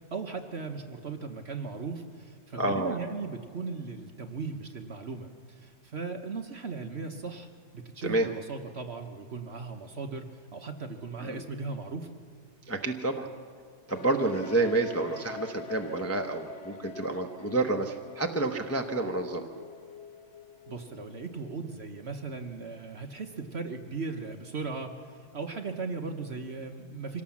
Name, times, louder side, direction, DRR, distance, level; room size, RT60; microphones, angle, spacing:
voice 1, 0.1-7.5 7.7-12.1 20.7-27.2, right 4 dB, 45° right, 5 dB, 1.1 m, -37 dB
voice 2, 2.5-3.0 8.0-8.3 11.2-11.4 12.7-13.3 13.9-19.5, right 2 dB, 10° left, 3 dB, 0.7 m, -29 dB
sound 1, 13.9-21.6, left 7 dB, 60° left, 1.6 m, -47 dB
25.5 x 18.0 x 7.3 m, 2.1 s
omnidirectional pair, 1.9 m